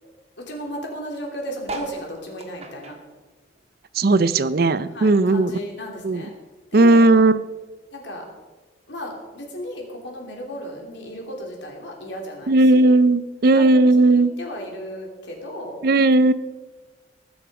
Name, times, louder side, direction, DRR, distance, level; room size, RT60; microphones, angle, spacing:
voice 1, 0.4-3.0 4.9-6.3 6.7-7.1 7.9-8.3 8.9-12.9 13.5-15.8, equal, 70° left, 0 dB, 3.0 m, -35 dB
sound 1, 1.6-4.4 4.7-6.2 6.7-6.8 7.0-7.1 7.3-7.7 8.5-8.6, right 2 dB, 35° right, 1.3 m, -39 dB
voice 2, 3.9-5.5 6.0-6.3 6.7-7.4 12.5-14.3 15.8-16.3, right 2 dB, 55° right, 15 dB, 0.5 m, -16 dB
19.5 x 7.2 x 4.9 m, 1.3 s
head